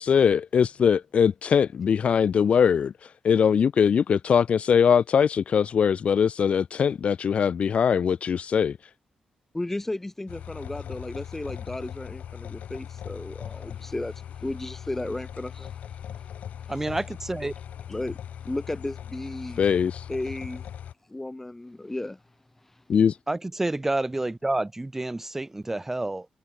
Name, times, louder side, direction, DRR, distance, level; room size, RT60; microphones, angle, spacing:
voice 1, 0.0-2.9 3.2-8.8 19.6-20.0 22.9-23.1, left 7 dB, 55° left, 1.1 m, -21 dB
voice 2, 9.5-15.7 17.9-18.2 18.4-19.7 20.1-20.6 21.1-22.2, left 2 dB, 10° left, 4.7 m, -34 dB
sound 1, 10.3-20.9, left 9 dB, 80° left, 3.5 m, -39 dB
voice 3, 16.7-17.5 23.3-26.3, right 2 dB, 15° right, 2.8 m, -29 dB
wide cardioid pair, 125°, 2 cm